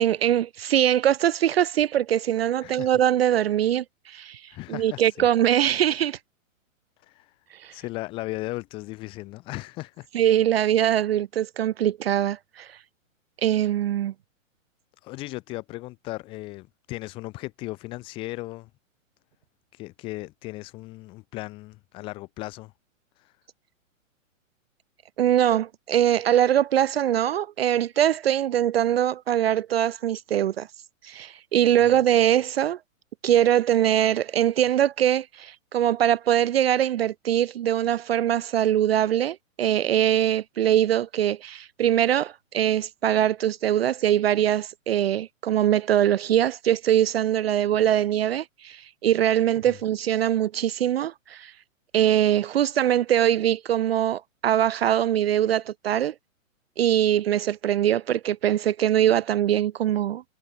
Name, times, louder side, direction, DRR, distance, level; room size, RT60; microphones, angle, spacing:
voice 1, 0.0-4.4 4.7-6.2 7.6-7.7 10.1-12.7 13.4-14.1 25.2-30.7 31.0-32.8 33.2-51.5 51.9-56.1 56.8-60.2, right 11 dB, 50° right, 0.6 m, -22 dB
voice 2, 2.6-2.9 4.5-5.3 7.0-7.4 7.7-10.1 15.0-18.7 19.7-22.7 23.2-23.4 31.8-32.0 49.7-49.8, left 20 dB, 15° left, 0.8 m, -37 dB
hypercardioid pair, 160°, 40 cm